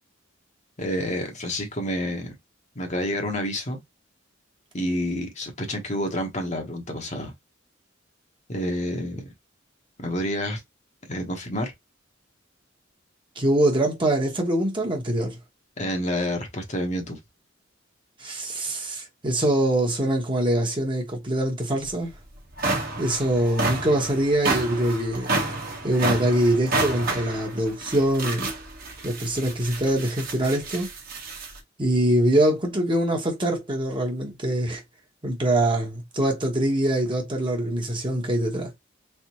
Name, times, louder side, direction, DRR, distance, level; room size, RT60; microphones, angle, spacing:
voice 1, 0.8-2.3 2.7-3.8 4.7-7.3 8.5-9.3 10.0-10.6 11.1-11.7 15.8-17.2, equal, 35° left, 1.0 m, -28 dB
voice 2, 13.4-15.4 18.2-22.1 23.0-25.3 25.8-28.5 29.0-30.9 31.8-34.8 35.2-38.7, right 1 dB, 25° right, 1.1 m, -23 dB
sound 1, 21.8-21.9 22.4-31.6, right 2 dB, 45° right, 1.2 m, -30 dB
3.5 x 3.5 x 2.9 m
head